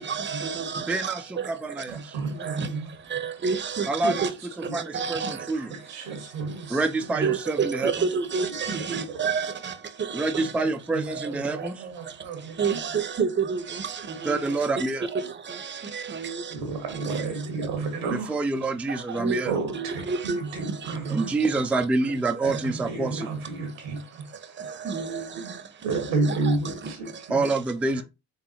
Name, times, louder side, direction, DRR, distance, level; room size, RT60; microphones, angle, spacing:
voice 1, 0.2-0.6 3.1-4.3 4.9-5.3 7.2-9.5 12.6-12.9 13.2-13.6 14.3-14.4 16.1-16.3 19.2-19.4 19.7-20.4 24.9-25.2 26.2-26.3, right 5 dB, 25° right, 0.8 m, -27 dB
voice 2, 0.9-2.1 3.9-4.2 4.7-5.7 6.7-7.9 10.1-11.9 14.2-15.1 18.3-19.5 21.1-23.3 27.3-28.0, right 3 dB, 5° right, 0.4 m, -27 dB
voice 3, 1.9-3.4 3.8-4.3 4.6-4.8 5.5-7.3 8.5-9.3 10.3-12.6 15.8-18.4 19.1-21.6 22.4-24.9 25.4-27.4 27.9-28.0, right 3 dB, 85° right, 1.2 m, -33 dB
3.9 x 3.6 x 2.8 m
hypercardioid pair, 50°, 40 cm